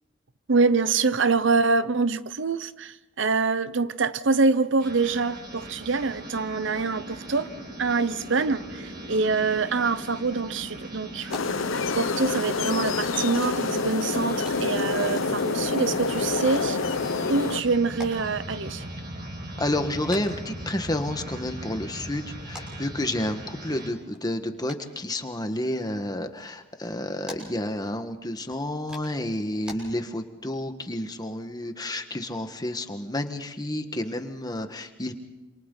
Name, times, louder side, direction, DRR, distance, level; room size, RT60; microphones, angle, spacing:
voice 1, 0.5-7.5 7.8-11.3 12.0-16.8 17.3-18.8, right 4 dB, 65° right, 0.9 m, -25 dB
sound 1, 4.8-23.9, right 1 dB, 50° right, 5.1 m, -39 dB
sound 2, 11.3-17.6, left 4 dB, 90° left, 0.8 m, -27 dB
voice 2, 19.6-35.1, left 1 dB, 20° left, 1.5 m, -30 dB
sound 3, 19.8-29.8, left 1 dB, 5° right, 6.6 m, -50 dB
28.0 x 27.5 x 4.0 m
head